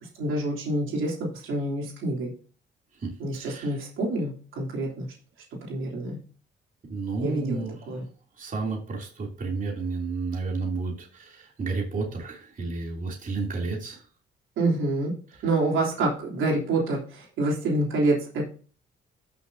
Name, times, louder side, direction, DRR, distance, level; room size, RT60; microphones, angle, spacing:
voice 1, 0.2-2.3 3.2-5.1 5.7-6.2 7.2-8.0 14.6-15.1 15.4-18.4, right 2 dB, 85° right, -2 dB, 3.3 m, -27 dB
voice 2, 3.0-3.8 6.9-7.8 8.4-14.0, right 3 dB, 40° right, -1 dB, 3.1 m, -31 dB
13.5 x 6.4 x 2.8 m, 0.39 s
cardioid pair, 90°, 20 cm